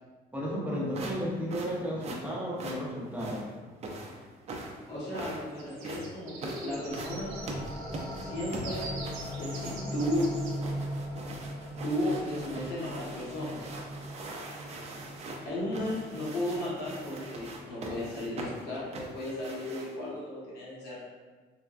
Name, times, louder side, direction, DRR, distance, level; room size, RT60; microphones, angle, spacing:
voice 1, 0.3-3.5, equal, 10° right, -5 dB, 0.7 m, -33 dB
sound 1, 0.9-20.1, right 2 dB, 40° right, 0.5 m, -42 dB
voice 2, 4.9-7.3 8.2-8.9 9.3-10.3 11.8-13.7 15.4-21.0, left 1 dB, 75° left, -7 dB, 1.2 m, -34 dB
sound 2, 5.6-10.5, right 3 dB, 90° right, 0.6 m, -45 dB
sound 3, 6.7-18.1, equal, 20° left, 0.5 m, -40 dB
3.4 x 2.2 x 2.4 m, 1.4 s
cardioid pair, 110°, 17 cm